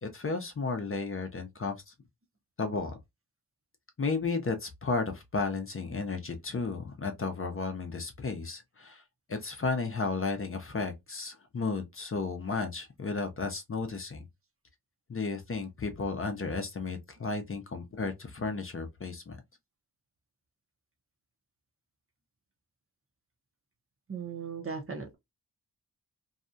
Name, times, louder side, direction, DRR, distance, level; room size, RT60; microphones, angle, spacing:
voice 1, 0.0-1.9 2.6-3.0 4.0-9.0 9.3-14.3 15.1-19.4, left 4 dB, 35° left, 0.5 m, -33 dB
voice 2, 24.1-25.1, right 5 dB, 35° right, 0.7 m, -37 dB
2.7 x 2.2 x 2.5 m
wide cardioid pair, 100°, 38 cm